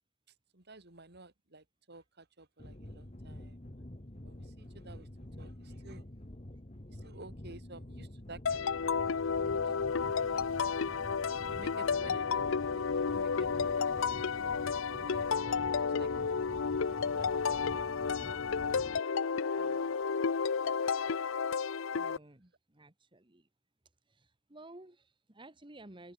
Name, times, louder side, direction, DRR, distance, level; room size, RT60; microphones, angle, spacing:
voice 1, 0.5-5.1 5.4-6.0 6.9-9.9 11.2-18.4 19.5-20.1, right 2 dB, 50° right, 3.0 m, -54 dB
sound 1, 2.6-19.0, left 1 dB, 30° left, 1.5 m, -47 dB
sound 2, 8.5-22.2, left 5 dB, 65° left, 0.6 m, -32 dB
voice 2, 22.0-23.5 24.1-26.1, right 2 dB, 25° right, 1.6 m, -54 dB
head